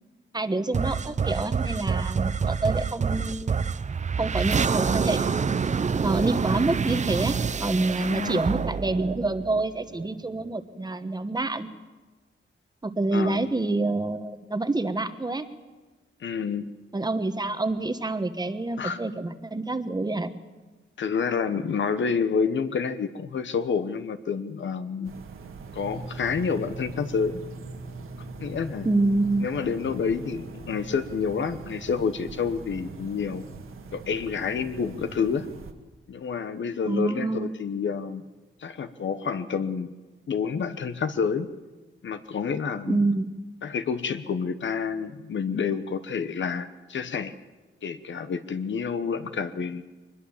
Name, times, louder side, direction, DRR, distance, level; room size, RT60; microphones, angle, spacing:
voice 1, 0.3-3.6 4.2-5.3 6.0-11.7 12.8-15.5 16.9-20.3 28.8-29.5 36.9-37.5 42.9-43.3, right 2 dB, 20° right, 9 dB, 1.2 m, -27 dB
sound 1, 0.7-10.1, right 6 dB, 35° right, 0.6 m, -27 dB
voice 2, 8.0-8.4 13.1-13.5 16.2-16.7 18.8-19.0 21.0-25.1 25.7-27.4 28.4-28.9 29.4-33.4 33.9-35.5 36.1-38.2 38.6-39.9 40.3-41.5 42.0-43.0 43.6-47.3 47.8-49.8, left 6 dB, 65° left, 11 dB, 1.1 m, -28 dB
sound 2, 25.0-35.7, right 5 dB, 80° right, 2.0 m, -43 dB
sound 3, 25.8-37.5, right 1 dB, ahead, 1.7 m, -45 dB
23.0 x 20.5 x 7.3 m, 1.2 s
wide cardioid pair, 120°, 21 cm